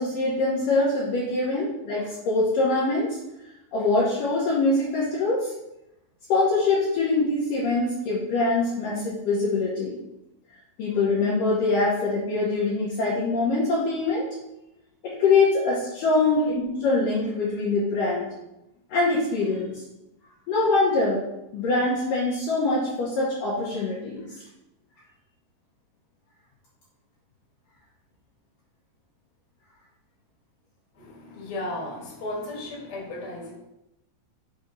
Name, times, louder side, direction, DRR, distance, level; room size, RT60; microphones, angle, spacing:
voice 1, 0.0-3.2 3.7-5.5 6.3-10.0 10.8-14.2 15.0-18.3 18.9-19.8 20.5-21.2 21.5-24.3, left 3 dB, 70° left, -6 dB, 2.3 m, -24 dB
voice 2, 30.9-33.5, left 1 dB, 45° left, -3 dB, 1.9 m, -35 dB
6.9 x 3.5 x 5.2 m, 0.91 s
omnidirectional pair, 4.9 m